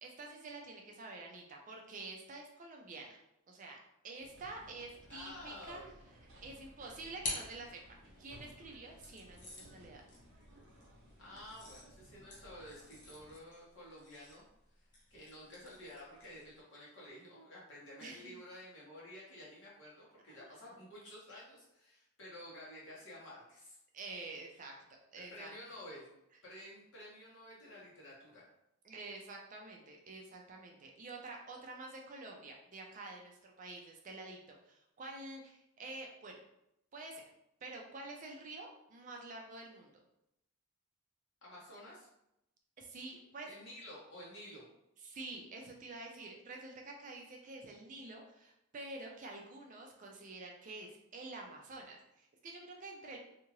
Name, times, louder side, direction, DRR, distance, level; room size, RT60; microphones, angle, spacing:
voice 1, 0.0-3.2 3.5-3.8 4.0-5.8 6.4-10.0 18.0-18.3 20.3-20.4 23.9-24.7 25.1-25.5 28.8-36.4 36.9-37.3 37.6-39.9 42.8-43.5 45.0-53.2, right 2 dB, 35° right, 1 dB, 0.4 m, -48 dB
sound 1, 4.2-13.4, equal, 60° right, 0.8 m, -59 dB
voice 2, 5.1-5.9 11.2-14.4 14.7-14.8 15.1-23.8 25.3-26.1 26.4-28.4 41.4-42.1 43.5-44.6, left 1 dB, 60° left, -6 dB, 1.2 m, -51 dB
sound 2, 6.8-8.3 9.0-16.6, left 3 dB, 35° left, 0.7 m, -49 dB
2.7 x 2.4 x 3.0 m, 0.83 s
head